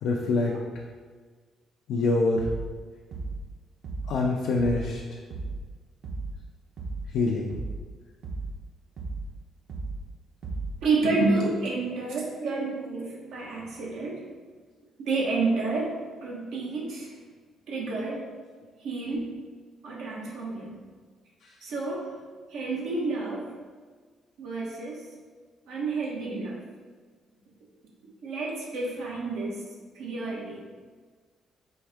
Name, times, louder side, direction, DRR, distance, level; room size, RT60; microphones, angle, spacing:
voice 1, 0.0-0.6 1.9-2.5 4.1-5.0 7.1-7.5 21.4-21.5, left 3 dB, 80° left, -1 dB, 0.4 m, -25 dB
sound 1, 2.4-2.8 3.1-3.5 3.8-4.2 4.6-4.9 5.3-5.7 6.0-6.4 6.8-7.1 7.5-7.9 8.2-8.6 9.0-9.3 9.7-10.1 10.4-10.8, right 3 dB, 50° right, 0.7 m, -35 dB
voice 2, 10.8-14.2 15.0-16.0 16.2-17.1 17.7-18.3 18.8-19.3 19.8-20.7 21.6-22.1 22.5-23.5 24.4-25.0 25.7-26.6 28.2-29.6 29.9-30.6, right 3 dB, 80° right, -3 dB, 1.0 m, -29 dB
4.4 x 2.7 x 3.4 m, 1.5 s
cardioid pair, 90°, 0 cm